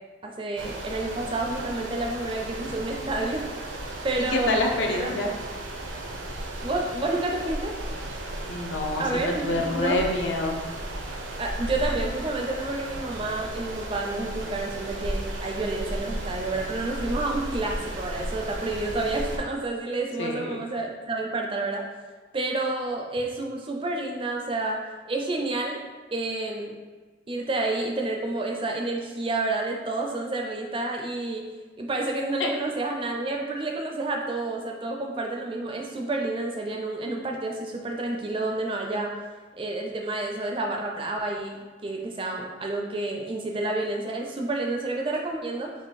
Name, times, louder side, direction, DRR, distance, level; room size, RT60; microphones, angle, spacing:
voice 1, 0.2-3.5 4.0-5.2 6.6-7.7 9.0-10.0 11.4-21.9 22.3-24.8 25.1-25.8 26.1-26.7 27.3-31.5 31.8-39.1 39.6-45.7, right 2 dB, 25° right, 1 dB, 0.4 m, -29 dB
sound 1, 0.6-19.4, right 1 dB, 80° right, 0.7 m, -35 dB
voice 2, 4.3-5.3 8.5-10.5 20.2-20.6 32.4-32.5, left 2 dB, 75° left, 2 dB, 0.6 m, -27 dB
3.8 x 3.0 x 4.0 m, 1.4 s
head